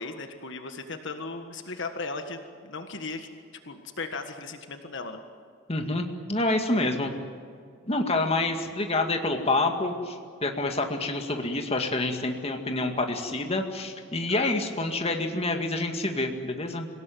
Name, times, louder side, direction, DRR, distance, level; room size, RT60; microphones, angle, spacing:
voice 1, 0.0-3.3 3.7-5.2 14.3-14.5, left 3 dB, 60° left, 6 dB, 1.6 m, -37 dB
voice 2, 5.7-7.1 7.9-16.9, left 2 dB, 30° left, 4 dB, 2.1 m, -27 dB
26.0 x 17.5 x 9.3 m, 2.2 s
head